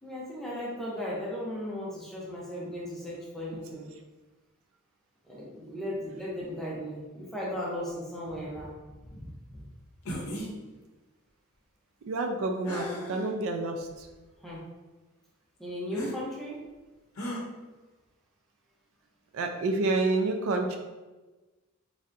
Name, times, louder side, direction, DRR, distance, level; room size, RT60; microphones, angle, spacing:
voice 1, 0.0-3.9 5.2-8.7 9.1-9.3 9.5-9.6 14.4-14.6 15.6-16.6, left 1 dB, ahead, -6 dB, 0.6 m, -36 dB
sound 1, 10.0-10.5 12.6-13.3 14.0-14.1 15.9-16.2 17.2-17.4, equal, 75° left, 0.6 m, -35 dB
voice 2, 12.1-14.1 19.3-20.8, right 2 dB, 70° right, 4 dB, 0.3 m, -29 dB
3.2 x 2.7 x 2.5 m, 1.2 s
head